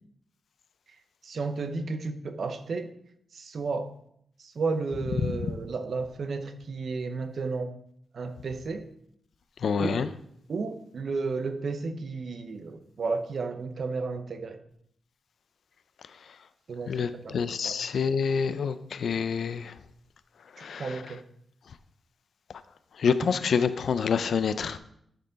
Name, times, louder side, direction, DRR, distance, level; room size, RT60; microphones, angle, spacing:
voice 1, 1.2-2.9 3.3-3.9 4.4-7.8 8.1-8.8 9.8-10.0 10.5-14.6 16.7-17.4 17.6-17.8 20.8-21.2, right 4 dB, 55° right, 9 dB, 0.7 m, -32 dB
voice 2, 9.6-10.1 16.3-16.4 16.9-19.8 20.5-21.1 23.0-24.8, left 6 dB, 70° left, 13 dB, 0.4 m, -27 dB
10.5 x 4.5 x 3.9 m, 0.71 s
wide cardioid pair, 115°, 0 cm